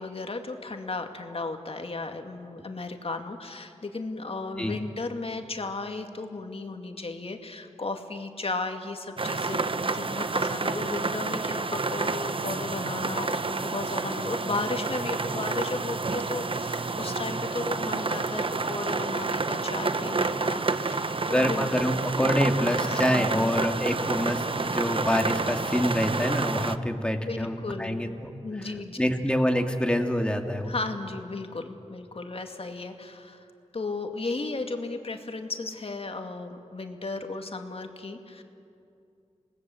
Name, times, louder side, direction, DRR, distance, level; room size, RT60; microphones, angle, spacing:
voice 1, 0.0-22.1 22.8-23.5 26.9-28.2 28.4-29.2 30.7-33.5 33.7-38.4, left 3 dB, 55° left, 5 dB, 2.3 m, -35 dB
sound 1, 9.2-26.8, right 3 dB, 45° right, 0.9 m, -29 dB
voice 2, 21.3-28.3 29.0-30.7, equal, 10° left, 4 dB, 2.6 m, -26 dB
27.5 x 19.5 x 7.9 m, 2.6 s
cardioid pair, 55°, 12 cm